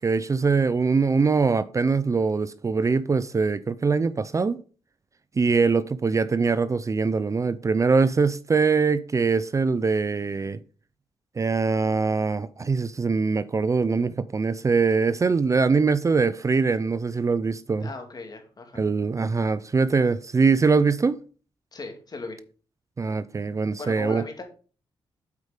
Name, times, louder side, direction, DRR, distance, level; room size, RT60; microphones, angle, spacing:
voice 1, 0.0-4.6 5.4-10.6 11.4-17.9 18.7-21.2 23.0-24.2, right 4 dB, 35° right, 0.5 m, -23 dB
voice 2, 17.8-18.8 21.7-22.4 23.8-24.4, left 3 dB, 40° left, 2.3 m, -37 dB
8.2 x 4.8 x 5.1 m
cardioid pair, 75°, 10 cm